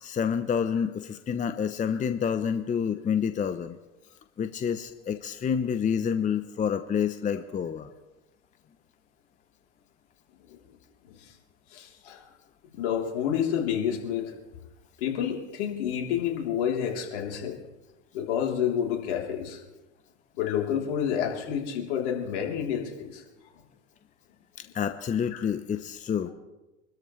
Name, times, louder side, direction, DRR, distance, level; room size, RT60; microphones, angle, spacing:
voice 1, 0.0-3.8 4.4-7.9 24.7-26.3, left 7 dB, 20° left, 10 dB, 0.8 m, -28 dB
voice 2, 11.7-12.2 12.7-14.3 15.0-17.6 18.1-19.6 20.4-23.2 25.3-25.4 26.3-26.4, left 8 dB, 65° left, 0 dB, 3.5 m, -29 dB
26.0 x 13.5 x 3.2 m, 1.0 s
hypercardioid pair, 90°, 37 cm